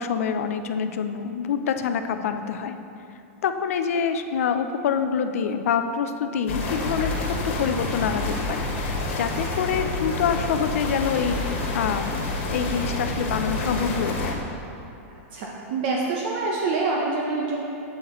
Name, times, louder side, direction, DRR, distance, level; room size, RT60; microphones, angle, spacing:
voice 1, 0.0-2.8 3.4-12.2 12.5-14.4, left 7 dB, 75° left, 8 dB, 0.5 m, -26 dB
sound 1, 6.5-14.3, left 2 dB, 50° left, 1.5 m, -28 dB
voice 2, 15.3-17.6, right 3 dB, 45° right, -2 dB, 0.7 m, -26 dB
7.8 x 7.7 x 3.1 m, 2.7 s
supercardioid pair, 165°, 8 cm